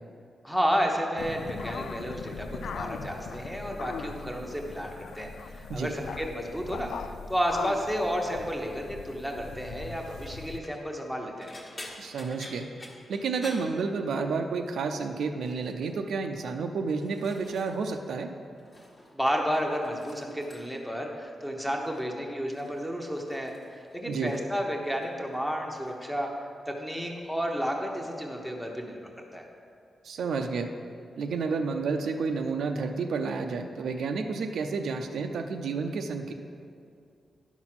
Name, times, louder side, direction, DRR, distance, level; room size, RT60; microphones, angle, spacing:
voice 1, 0.4-6.9 7.3-11.5 19.1-26.3 26.7-29.4, equal, ahead, 0 dB, 0.9 m, -31 dB
sound 1, 1.2-10.6, left 5 dB, 85° left, 0.4 m, -40 dB
sound 2, 10.5-10.8 11.4-14.4 14.7-15.1 15.4-15.9 16.6-18.0 18.3-19.1 19.4-20.9 21.8-22.1 22.5-24.6 24.8-25.4 25.7-26.0 27.2-27.3, left 1 dB, 25° left, 1.3 m, -49 dB
voice 2, 12.0-12.7 13.1-18.3 24.1-24.3 30.0-30.7 31.2-36.3, right 4 dB, 80° right, 5 dB, 0.6 m, -30 dB
10.5 x 6.1 x 6.0 m, 2.4 s
wide cardioid pair, 180°, 0 cm